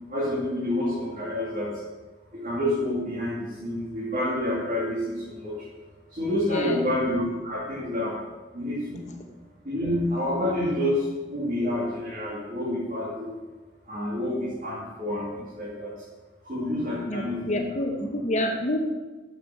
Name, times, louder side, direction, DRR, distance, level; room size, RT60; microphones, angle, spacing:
voice 1, 0.1-1.7 2.3-5.5 6.2-8.1 8.5-9.1 9.7-11.0 11.3-13.3 13.9-15.9 16.4-17.6, left 1 dB, 45° right, -7 dB, 2.5 m, -28 dB
voice 2, 6.5-6.8 17.1-18.8, left 1 dB, 40° left, 3 dB, 1.0 m, -28 dB
7.2 x 6.9 x 7.6 m, 1.2 s
head